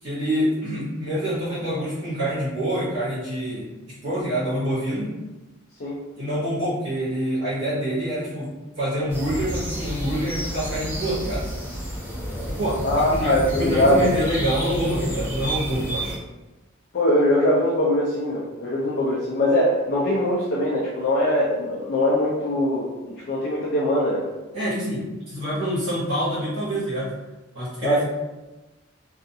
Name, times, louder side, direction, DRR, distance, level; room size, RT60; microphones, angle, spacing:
voice 1, 0.0-5.1 6.2-11.5 12.5-16.1 24.5-27.1 27.5-28.0, equal, 60° right, -11 dB, 1.2 m, -26 dB
sound 1, 9.1-16.2, equal, 15° right, 1.3 m, -30 dB
voice 2, 12.8-14.1 16.9-24.2 27.8-28.0, left 1 dB, 55° left, -6 dB, 0.5 m, -22 dB
2.4 x 2.4 x 2.7 m, 1.1 s
head